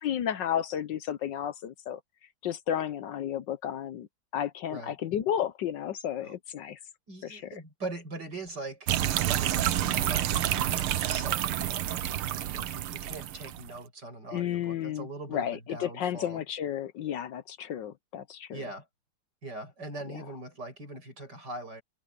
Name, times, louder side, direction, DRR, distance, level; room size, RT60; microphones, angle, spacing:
voice 1, 0.0-2.0 2.4-4.1 4.3-6.8 7.2-7.6 14.3-18.6, left 10 dB, 65° left, 1.3 m, -32 dB
voice 2, 7.1-8.9 9.2-16.4 18.5-18.9 19.4-21.8, right 2 dB, 50° right, 8.9 m, -42 dB
sound 1, 8.9-13.7, right 12 dB, 75° right, 1.8 m, -29 dB
open air
omnidirectional pair, 2.4 m